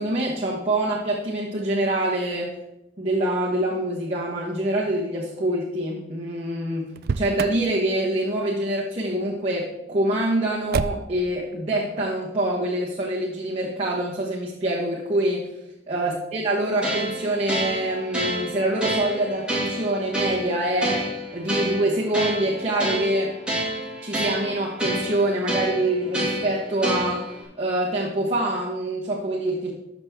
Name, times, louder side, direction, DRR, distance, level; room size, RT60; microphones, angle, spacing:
voice 1, 0.0-2.5 3.0-6.9 7.1-15.4 15.9-21.0 21.3-23.4 24.0-29.7, right 1 dB, 30° right, -4 dB, 1.2 m, -25 dB
Motor vehicle (road), 6.9-7.7 10.7-11.3, right 5 dB, 55° right, 0.4 m, -27 dB
sound 1, 16.8-27.4, right 1 dB, 5° right, 2.2 m, -29 dB
12.5 x 6.2 x 3.6 m, 0.90 s
head